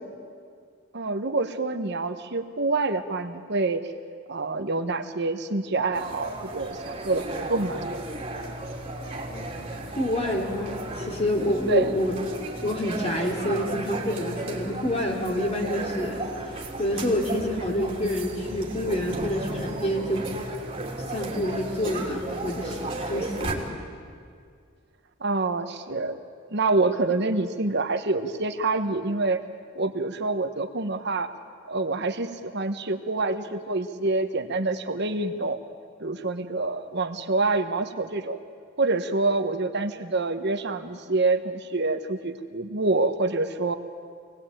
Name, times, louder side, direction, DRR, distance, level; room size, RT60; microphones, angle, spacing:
voice 1, 0.9-3.8 4.3-8.0 11.7-11.9 25.2-26.2 26.5-29.4 29.8-31.3 31.7-35.6 36.0-38.4 38.8-43.8, right 3 dB, 55° right, 8 dB, 1.2 m, -26 dB
sound 1, 5.9-23.5, right 2 dB, 30° right, 3.2 m, -34 dB
voice 2, 9.3-12.2 12.6-16.2 16.8-20.3 21.1-23.6, left 1 dB, 30° left, 1 dB, 3.2 m, -28 dB
26.0 x 19.0 x 9.0 m, 2.2 s
head